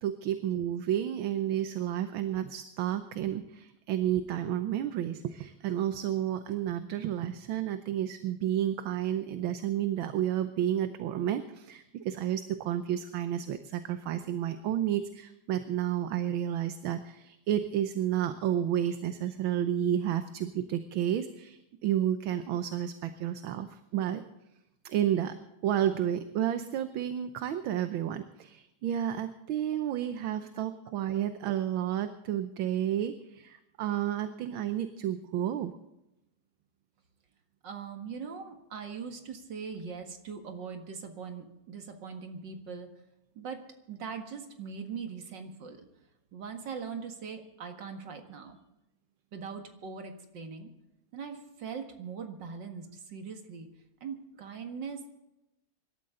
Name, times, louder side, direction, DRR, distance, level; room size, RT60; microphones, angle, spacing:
voice 1, 0.0-24.2 24.8-25.3 25.6-35.7, right 11 dB, 75° right, 9 dB, 1.6 m, -31 dB
voice 2, 37.6-42.9 43.4-45.9 46.3-48.6 49.3-50.7 51.1-53.7 54.0-55.1, right 6 dB, 60° right, 5 dB, 2.4 m, -41 dB
25.0 x 13.0 x 3.8 m, 0.89 s
omnidirectional pair, 2.3 m